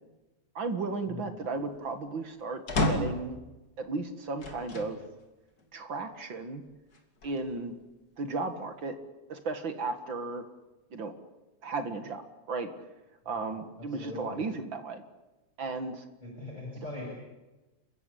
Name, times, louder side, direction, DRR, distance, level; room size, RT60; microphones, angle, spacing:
voice 1, 0.6-3.4 3.8-5.0 5.7-6.6 7.2-7.7 8.2-9.0 9.3-10.5 10.9-11.1 11.6-12.7 13.3-15.0 15.6-16.0 16.8-16.9, right 3 dB, 45° right, 8 dB, 2.2 m, -35 dB
sound 1, 2.7-3.3 4.4-5.0 5.6-5.7 6.9-7.7, left 2 dB, 35° left, 2.7 m, -31 dB
voice 2, 13.8-14.4 16.2-17.0, left 1 dB, 15° left, -4 dB, 7.3 m, -41 dB
29.0 x 15.5 x 8.6 m, 1.1 s
omnidirectional pair, 3.4 m